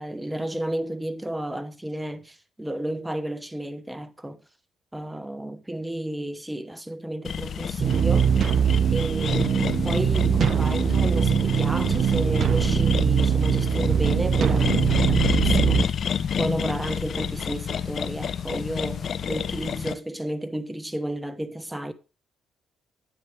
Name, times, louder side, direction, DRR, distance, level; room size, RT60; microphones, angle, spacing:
voice 1, 0.0-4.4 4.9-8.4 8.9-15.9 16.4-21.9, right 1 dB, 5° right, 1.0 m, -32 dB
sound 1, 7.2-19.9, left 7 dB, 55° left, 0.8 m, -29 dB
sound 2, 7.8-15.9, right 8 dB, 60° right, 0.6 m, -22 dB
10.0 x 9.2 x 3.4 m
cardioid pair, 90°, 0 cm